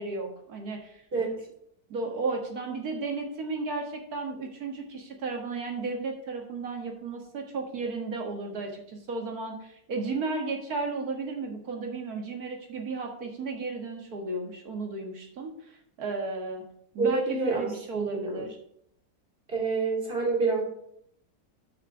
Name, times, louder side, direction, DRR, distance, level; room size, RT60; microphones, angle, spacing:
voice 1, 0.0-1.0 1.9-16.6 16.9-18.6, right 3 dB, 60° right, 2 dB, 2.0 m, -34 dB
voice 2, 17.0-18.4 19.5-20.6, right 4 dB, 30° right, -3 dB, 3.0 m, -28 dB
6.8 x 5.8 x 6.0 m, 0.71 s
omnidirectional pair, 1.9 m